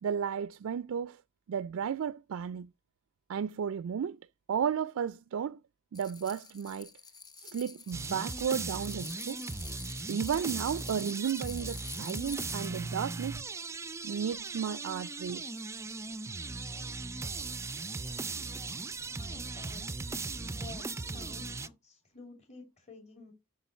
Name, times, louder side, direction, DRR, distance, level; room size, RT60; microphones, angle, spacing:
voice 1, 0.0-1.2 1.5-2.7 3.3-4.2 4.5-5.6 5.9-6.9 7.4-9.4 10.1-13.5 14.0-15.7, right 7 dB, 85° right, 0.4 m, -33 dB
sound 1, 5.9-12.7, left 5 dB, 20° left, 0.9 m, -47 dB
sound 2, 7.9-21.7, right 3 dB, 15° right, 0.4 m, -38 dB
voice 2, 19.0-19.9 20.4-23.3, left 3 dB, 35° left, 2.6 m, -51 dB
8.2 x 6.2 x 4.2 m
head